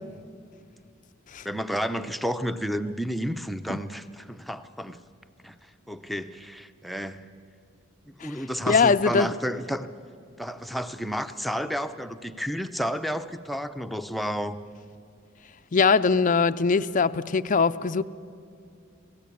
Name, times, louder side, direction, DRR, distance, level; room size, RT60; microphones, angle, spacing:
voice 1, 1.4-5.0 5.4-5.6 5.9-7.2 8.0-9.9 10.4-14.6, equal, ahead, 8 dB, 0.7 m, -31 dB
voice 2, 8.7-9.3 15.7-18.0, left 5 dB, 40° left, 11 dB, 0.5 m, -22 dB
26.0 x 17.0 x 8.5 m, 2.4 s
head